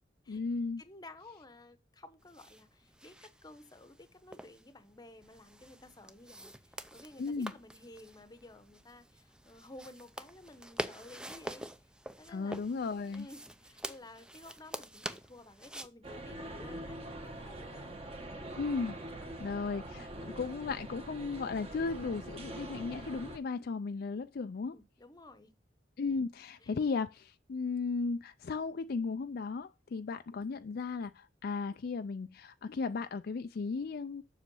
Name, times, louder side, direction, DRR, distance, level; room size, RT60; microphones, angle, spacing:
voice 1, 0.3-0.8 7.2-7.5 12.3-13.3 18.6-19.0 19.4-20.1 20.4-24.8 26.0-34.2, left 4 dB, 55° left, 0.4 m, -35 dB
voice 2, 0.8-11.7 12.2-12.6 13.1-17.0 17.2-18.0 24.7-25.5 26.6-26.7, left 2 dB, 20° left, 0.9 m, -54 dB
sound 1, 2.2-15.9, right 1 dB, 5° right, 0.5 m, -46 dB
sound 2, 16.0-23.4, right 1 dB, 35° right, 1.4 m, -44 dB
7.3 x 6.4 x 5.4 m
head